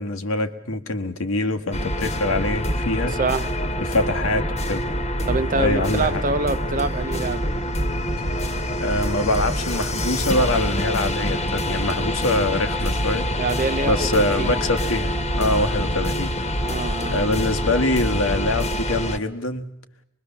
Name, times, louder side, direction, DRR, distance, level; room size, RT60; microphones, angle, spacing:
voice 1, 0.0-3.2 3.8-4.8 5.6-6.2 8.8-13.3 13.9-16.3 17.1-19.7, left 2 dB, 85° left, 1.5 m, -24 dB
sound 1, 1.7-19.2, equal, 35° left, 1.4 m, -25 dB
voice 2, 3.2-3.6 5.3-7.5 13.4-14.6 16.6-17.3, right 3 dB, 40° right, 0.8 m, -26 dB
24.5 x 22.0 x 7.1 m
head